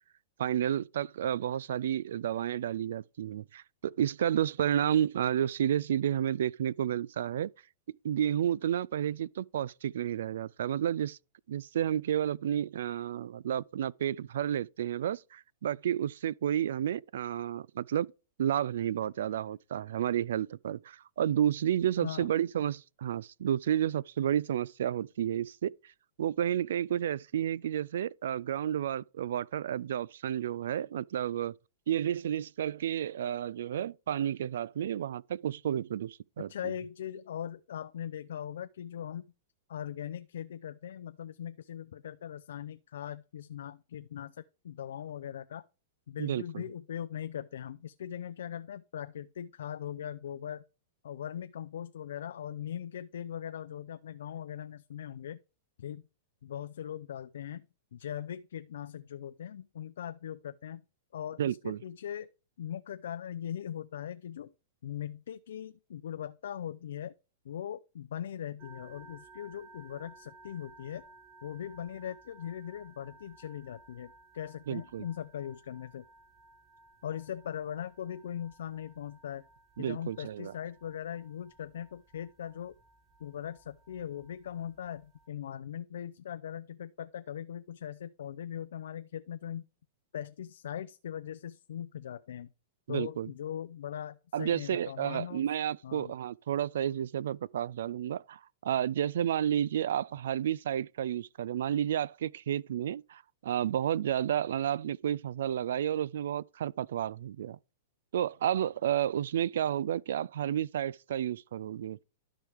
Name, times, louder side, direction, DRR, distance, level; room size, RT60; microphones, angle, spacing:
voice 1, 0.4-7.5 8.0-11.2 11.5-18.1 18.4-25.7 26.2-31.5 31.9-36.5 46.2-46.6 61.4-61.8 74.7-75.0 79.8-80.5 92.9-93.3 94.3-107.6 108.1-112.0, right 10 dB, 75° right, 0.3 m, -31 dB
voice 2, 36.5-39.3 39.7-45.6 46.1-50.6 51.0-55.4 55.8-56.1 56.4-57.7 57.9-60.8 61.1-62.3 62.6-64.5 64.8-67.1 67.4-71.0 71.4-76.0 77.0-79.4 79.8-82.8 83.2-89.7 90.1-92.5 92.9-95.5 95.8-96.1, left 9 dB, 80° left, 0.5 m, -40 dB
sound 1, 68.6-85.3, right 3 dB, 30° right, 2.0 m, -58 dB
12.5 x 4.8 x 3.5 m
hypercardioid pair, 145°, 0 cm